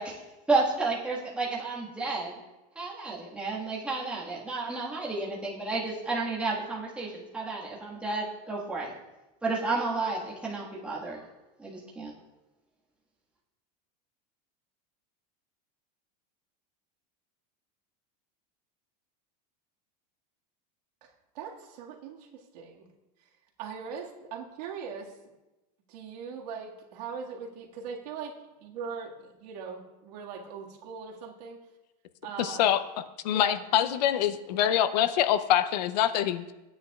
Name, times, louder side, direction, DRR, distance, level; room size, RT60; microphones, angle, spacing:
voice 1, 0.5-2.3 2.7-8.9 9.4-11.2 11.6-12.1, right 3 dB, 5° right, -6 dB, 1.6 m, -31 dB
voice 2, 21.0-22.9 23.2-23.3 23.6-25.2 25.9-31.6 32.2-32.7 33.3-33.6, right 6 dB, 75° right, -1 dB, 1.9 m, -41 dB
voice 3, 32.4-32.8 33.2-36.5, left 10 dB, 85° left, 12 dB, 0.7 m, -25 dB
16.5 x 9.5 x 2.4 m, 1.0 s
supercardioid pair, 175°, 21 cm